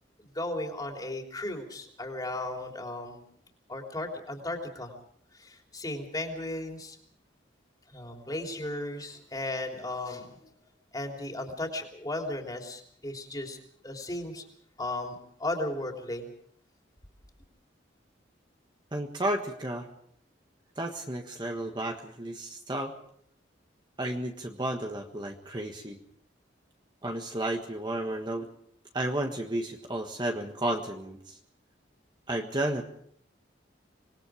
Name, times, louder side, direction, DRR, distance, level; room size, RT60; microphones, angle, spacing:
voice 1, 0.3-3.2 3.7-4.9 5.3-7.0 7.9-10.4 10.9-13.6 13.8-14.4 14.8-16.3, left 1 dB, 20° left, 2 dB, 3.5 m, -35 dB
voice 2, 18.9-19.9 20.8-22.9 24.0-26.0 27.0-28.5 28.9-31.4 32.3-32.8, right 1 dB, 25° right, 3 dB, 1.5 m, -32 dB
26.0 x 20.5 x 5.0 m, 0.65 s
head